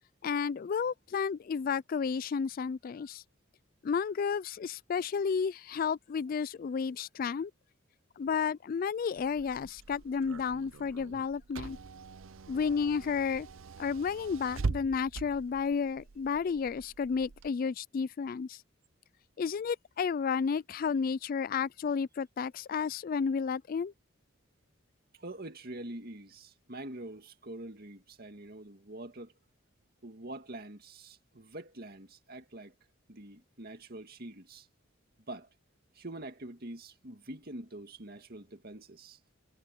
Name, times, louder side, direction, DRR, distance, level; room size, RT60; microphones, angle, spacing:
voice 1, 0.2-3.2 3.8-7.5 8.2-11.8 12.5-13.5 13.8-18.6 19.4-23.9, left 6 dB, 45° left, 0.3 m, -32 dB
Car / Engine, 9.2-17.5, right 4 dB, 85° right, 0.7 m, -42 dB
voice 2, 25.1-29.3 30.0-32.7 33.1-34.7 35.3-35.5 35.9-39.2, right 1 dB, 50° right, 2.2 m, -45 dB
head